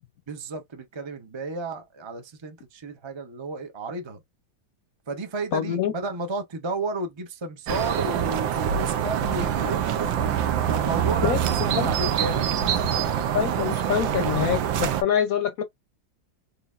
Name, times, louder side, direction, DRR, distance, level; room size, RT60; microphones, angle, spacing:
voice 1, 0.3-4.2 5.1-10.1 10.7-13.1, right 3 dB, 50° right, 0.3 m, -33 dB
voice 2, 5.5-5.9 11.2-11.4 11.7-11.9 13.3-15.6, left 9 dB, 65° left, 0.9 m, -25 dB
sound 1, 7.7-15.0, right 9 dB, 85° right, 1.5 m, -25 dB
4.9 x 2.8 x 2.4 m
omnidirectional pair, 2.0 m